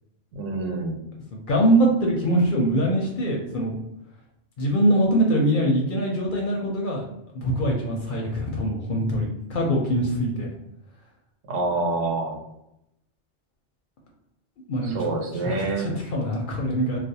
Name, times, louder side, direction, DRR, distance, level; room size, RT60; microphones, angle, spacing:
voice 1, 0.3-1.0 11.5-12.4 14.8-15.9, right 3 dB, 80° right, 1 dB, 0.9 m, -27 dB
voice 2, 1.5-3.7 4.6-7.0 7.3-10.5 14.7-14.9 15.4-17.0, right 1 dB, 60° left, -1 dB, 0.6 m, -23 dB
2.4 x 2.1 x 2.6 m, 0.84 s
omnidirectional pair, 1.2 m